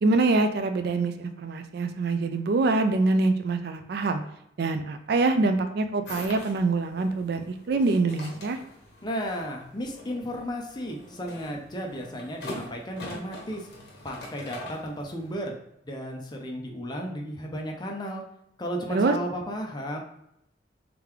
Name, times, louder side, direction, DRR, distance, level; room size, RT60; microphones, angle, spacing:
voice 1, 0.0-4.2 4.6-8.6 18.9-19.1, right 3 dB, 60° right, 8 dB, 0.4 m, -25 dB
sound 1, 6.0-15.4, left 1 dB, 60° left, 1.1 m, -43 dB
voice 2, 9.0-13.7 14.0-15.6 15.8-18.2 18.6-20.0, equal, 25° left, 1 dB, 0.6 m, -34 dB
3.7 x 3.4 x 3.1 m, 0.78 s
head